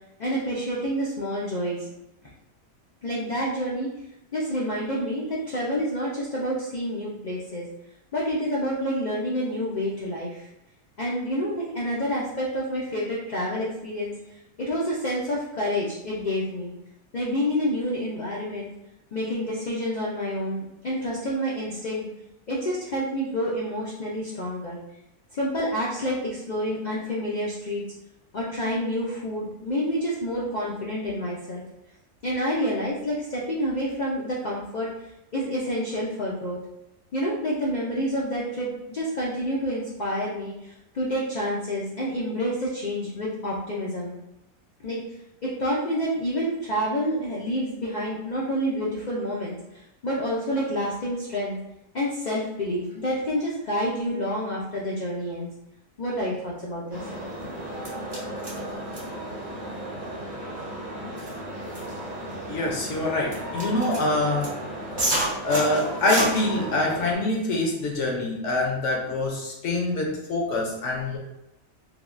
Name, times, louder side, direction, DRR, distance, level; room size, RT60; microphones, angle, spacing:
voice 1, 0.2-1.9 3.0-3.9 4.3-7.7 8.1-10.5 11.0-16.7 17.1-18.7 19.1-22.1 22.5-24.8 25.3-27.8 28.3-31.6 32.2-34.9 35.3-36.6 37.1-44.2 44.8-45.2 45.4-51.6 51.9-55.5 56.0-57.0, equal, 85° left, -5 dB, 0.4 m, -28 dB
sound 1, 56.9-67.1, right 1 dB, 25° right, 0.6 m, -32 dB
voice 2, 62.5-64.6 65.4-71.2, left 2 dB, 65° left, -1 dB, 0.8 m, -25 dB
3.4 x 2.2 x 2.4 m, 0.88 s
omnidirectional pair, 1.5 m